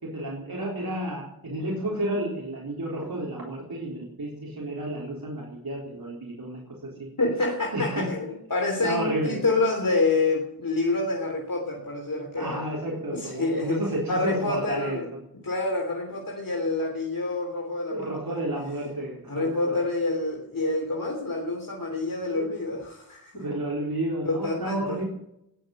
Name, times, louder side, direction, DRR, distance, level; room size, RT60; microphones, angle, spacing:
voice 1, 0.0-6.9 7.7-8.1 8.8-9.4 12.4-15.2 17.9-19.8 22.3-22.5 23.3-25.0, right 1 dB, 80° right, -3 dB, 4.0 m, -31 dB
voice 2, 7.2-12.6 13.1-13.8 14.1-15.1 15.4-18.4 19.3-23.4 24.2-25.0, left 2 dB, 65° left, 0 dB, 3.3 m, -27 dB
20.0 x 8.2 x 7.8 m, 0.79 s
wide cardioid pair, 50°, 36 cm